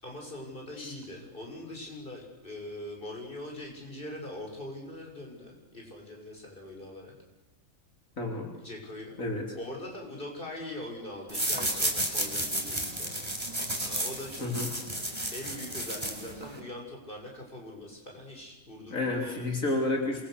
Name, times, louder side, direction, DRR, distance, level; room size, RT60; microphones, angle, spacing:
voice 1, 0.0-7.1 8.6-9.2 9.5-13.3 13.8-14.5 15.3-19.6, left 1 dB, 40° left, 0 dB, 6.9 m, -42 dB
voice 2, 8.2-8.5 9.2-9.5 14.4-14.7 18.9-20.3, left 2 dB, 85° left, 1 dB, 3.9 m, -30 dB
sound 1, 11.3-16.6, right 1 dB, 20° right, 4.4 m, -32 dB
27.5 x 23.5 x 6.8 m, 1.0 s
omnidirectional pair, 1.4 m